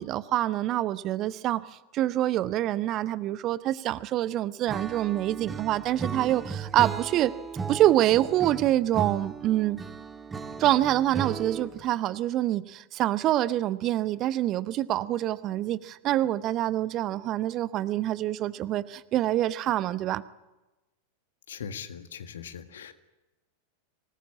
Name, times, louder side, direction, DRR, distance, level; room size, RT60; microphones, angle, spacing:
voice 1, 0.0-1.7 1.9-7.3 7.7-9.8 10.6-20.2, right 13 dB, 35° right, 16 dB, 0.9 m, -26 dB
Acoustic guitar / Strum, 4.7-11.9, right 5 dB, 15° right, 1.7 m, -36 dB
voice 2, 21.5-22.9, left 7 dB, 60° left, 9 dB, 1.8 m, -40 dB
24.5 x 19.5 x 8.6 m, 1.0 s
figure-of-eight pair, 90°, 0 cm